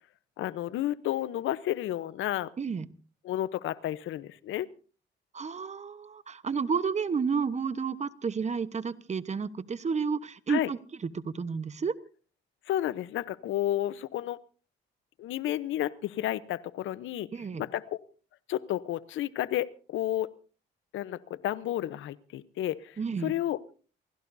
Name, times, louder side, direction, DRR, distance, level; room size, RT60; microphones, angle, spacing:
voice 1, 0.4-2.5 3.2-4.7 10.5-10.7 12.7-14.4 15.2-17.3 17.6-18.0 18.5-20.3 20.9-23.6, left 13 dB, 80° left, 17 dB, 0.8 m, -31 dB
voice 2, 2.6-2.9 5.3-11.9 17.3-17.6 23.0-23.3, right 5 dB, 35° right, 14 dB, 1.1 m, -31 dB
27.5 x 17.0 x 2.7 m, 0.38 s
cardioid pair, 90°, 20 cm